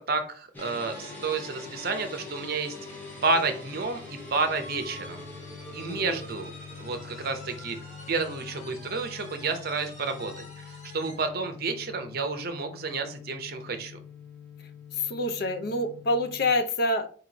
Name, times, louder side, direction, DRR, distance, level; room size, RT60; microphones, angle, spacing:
voice 1, 0.1-2.8 3.2-5.3 5.7-6.5 6.8-7.8 8.1-10.6 10.9-14.0, right 3 dB, 50° right, 7 dB, 0.7 m, -30 dB
sound 1, 0.5-16.5, left 5 dB, 10° left, 0.6 m, -45 dB
sound 2, 0.6-11.3, left 1 dB, 35° left, 1.1 m, -46 dB
voice 2, 14.9-17.1, left 2 dB, 55° left, 9 dB, 0.5 m, -27 dB
4.5 x 3.0 x 3.9 m, 0.43 s
head